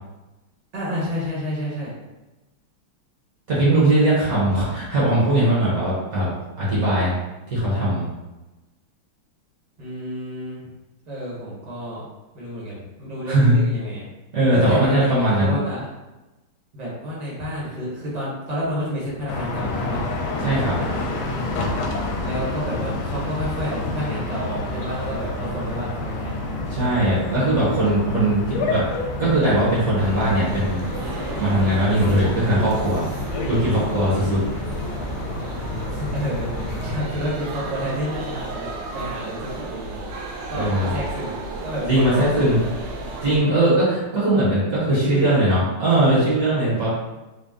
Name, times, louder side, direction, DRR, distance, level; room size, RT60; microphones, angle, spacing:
voice 1, 0.7-1.9 9.8-10.7 11.1-12.0 12.3-14.0 14.5-15.9 16.7-20.0 22.2-26.4 35.8-40.1 40.5-42.1 42.4-42.7 44.8-45.4, equal, 25° right, -6 dB, 1.0 m, -30 dB
voice 2, 3.5-6.3 6.6-7.1 7.5-8.0 13.3-13.5 14.3-15.6 20.4-20.7 26.7-28.8 29.2-30.8 31.3-33.0 33.5-34.4 40.5-40.9 41.9-42.6 43.2-46.9, right 1 dB, 50° right, -7 dB, 1.3 m, -20 dB
sound 1, 19.3-37.0, left 2 dB, 80° left, 1.4 m, -29 dB
sound 2, 30.0-43.4, right 2 dB, 85° right, 1.5 m, -33 dB
4.0 x 2.2 x 3.6 m, 1.1 s
omnidirectional pair, 2.3 m